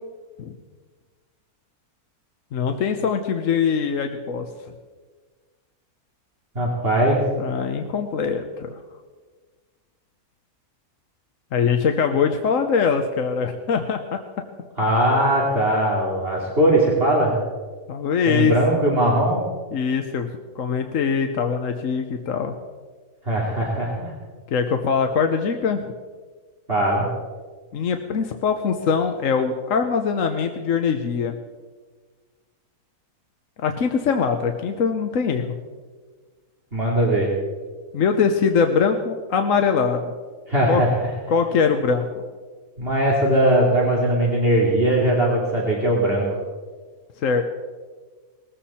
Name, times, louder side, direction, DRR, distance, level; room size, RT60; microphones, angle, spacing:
voice 1, 2.5-4.4 7.4-8.7 11.5-14.2 17.9-18.5 19.7-20.3 20.5-22.5 24.5-25.9 27.7-31.4 33.6-35.6 37.9-40.1 40.7-40.8 41.3-42.1 47.2-47.4, left 6 dB, 65° left, 5 dB, 1.3 m, -22 dB
voice 2, 6.5-7.2 14.8-17.4 18.3-19.4 23.2-24.1 26.7-27.1 36.7-37.3 40.5-41.1 42.8-46.3, right 1 dB, 40° right, -3 dB, 3.0 m, -20 dB
19.5 x 14.5 x 4.3 m, 1.4 s
omnidirectional pair, 1.6 m